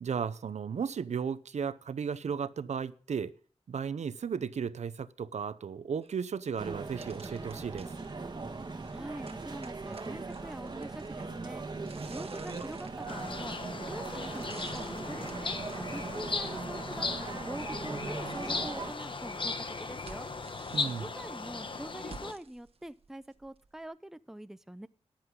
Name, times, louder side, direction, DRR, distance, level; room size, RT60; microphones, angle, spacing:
voice 1, 0.0-3.3 3.7-7.9 20.7-21.1, right 6 dB, 85° right, 0.7 m, -35 dB
sound 1, 6.0-6.1 6.6-6.7 7.0-23.9, right 4 dB, 60° right, 1.3 m, -55 dB
sound 2, 6.6-18.9, right 3 dB, 40° right, 1.7 m, -40 dB
voice 2, 8.9-11.6 11.9-15.6 15.9-20.3 20.9-24.9, right 1 dB, 5° right, 0.5 m, -44 dB
sound 3, 13.1-22.3, left 4 dB, 45° left, 1.1 m, -37 dB
13.5 x 10.0 x 3.7 m
wide cardioid pair, 125°, 11 cm